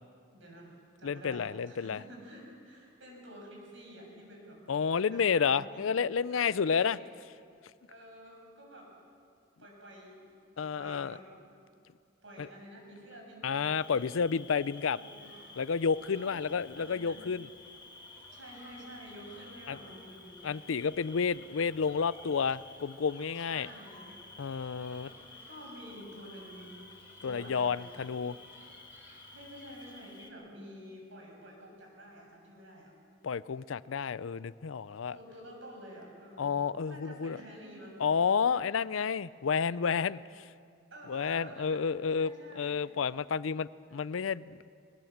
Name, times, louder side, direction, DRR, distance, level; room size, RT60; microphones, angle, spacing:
voice 1, 0.3-4.6 4.9-5.8 6.3-7.0 7.9-8.9 9.6-10.3 10.7-11.3 12.2-14.1 14.9-15.3 16.0-17.2 18.3-20.3 23.3-24.2 25.0-25.2 25.5-26.7 27.2-28.1 29.3-32.9 35.1-38.0 40.9-41.8 42.1-42.8, equal, 70° right, 0 dB, 6.6 m, -50 dB
voice 2, 1.0-2.0 4.7-7.0 10.6-11.2 12.4-12.5 13.4-15.0 15.6-17.5 19.7-19.8 20.4-23.7 24.4-25.1 27.2-28.3 33.2-35.2 36.4-37.4 38.0-40.5 41.1-44.7, left 6 dB, 90° left, 18 dB, 0.5 m, -30 dB
Cricket, 13.7-30.3, left 3 dB, 25° left, 1.7 m, -52 dB
sound 1, 15.2-29.9, equal, 10° right, 7.0 m, -59 dB
21.5 x 19.5 x 7.2 m, 2.3 s
head